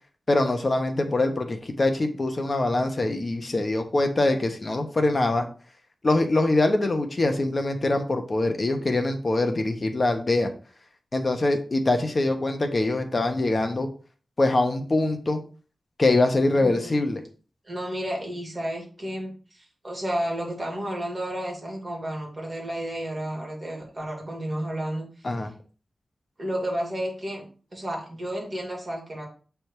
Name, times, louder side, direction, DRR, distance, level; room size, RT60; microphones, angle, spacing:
voice 1, 0.3-5.5 6.0-10.5 11.1-13.9 14.4-15.4 16.0-17.2 25.2-25.5, left 2 dB, 35° left, 6 dB, 0.9 m, -23 dB
voice 2, 16.5-17.0 17.6-25.3 26.4-27.4 27.7-29.3, right 1 dB, 30° right, -1 dB, 2.4 m, -32 dB
7.7 x 3.4 x 4.5 m, 0.39 s
wide cardioid pair, 125°, 0 cm